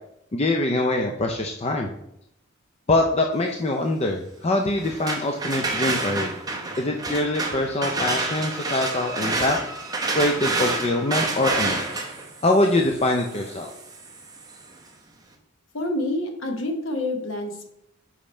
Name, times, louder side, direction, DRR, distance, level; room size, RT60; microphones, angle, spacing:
voice 1, 0.3-1.9 2.9-6.3 6.8-9.6 10.1-12.0 12.4-13.7, left 2 dB, 30° left, 2 dB, 0.4 m, -24 dB
sound 1, 4.8-14.6, right 3 dB, 20° right, 0.7 m, -29 dB
voice 2, 15.7-17.7, left 1 dB, 60° left, 3 dB, 1.1 m, -28 dB
5.3 x 4.9 x 4.3 m, 0.77 s
head